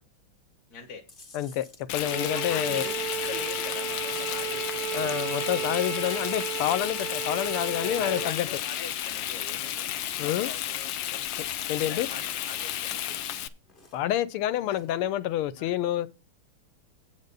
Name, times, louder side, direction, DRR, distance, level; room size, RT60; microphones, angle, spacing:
voice 1, 0.7-1.0 2.3-6.3 7.8-11.4 11.8-13.2 15.6-15.7, left 5 dB, 50° left, 1.5 m, -43 dB
Chewing mastication, 1.1-9.5 9.8-10.8 11.0-12.2 12.5-14.1 14.5-15.0, left 3 dB, 30° left, 1.1 m, -53 dB
voice 2, 1.3-1.6 1.9-2.8 4.9-8.5 10.2-10.5 11.7-12.1 13.9-16.1, left 12 dB, 90° left, 1.6 m, -28 dB
Frying (food), 1.9-13.5, left 12 dB, 70° left, 1.2 m, -33 dB
Bowed string instrument, 2.0-8.4, right 11 dB, 80° right, 0.8 m, -34 dB
8.2 x 5.2 x 6.7 m
omnidirectional pair, 2.4 m